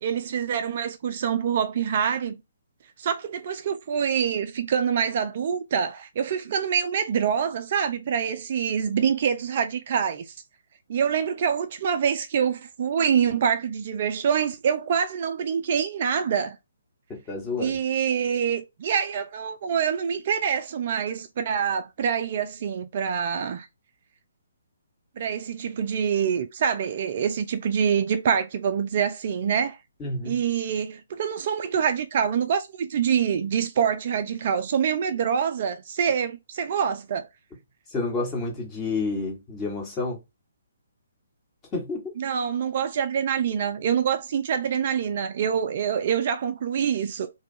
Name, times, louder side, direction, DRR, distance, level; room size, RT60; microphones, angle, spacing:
voice 1, 0.0-2.4 3.0-10.3 10.9-16.6 17.6-23.7 25.2-29.8 30.2-37.3 42.2-47.3, right 7 dB, 45° right, 0.4 m, -25 dB
voice 2, 17.1-17.8 30.0-30.4 37.9-40.2 41.7-42.1, left 3 dB, 20° left, 1.1 m, -29 dB
2.6 x 2.3 x 2.5 m
figure-of-eight pair, 135°, 0 cm